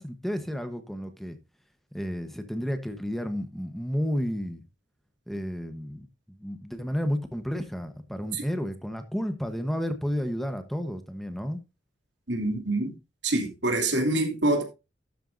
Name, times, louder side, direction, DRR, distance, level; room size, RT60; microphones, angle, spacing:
voice 1, 0.0-1.4 1.9-4.6 5.3-11.6, equal, ahead, 1.1 m, -32 dB
voice 2, 12.3-12.9 13.2-14.6, right 2 dB, 90° right, 2.7 m, -25 dB
12.5 x 9.0 x 2.6 m
head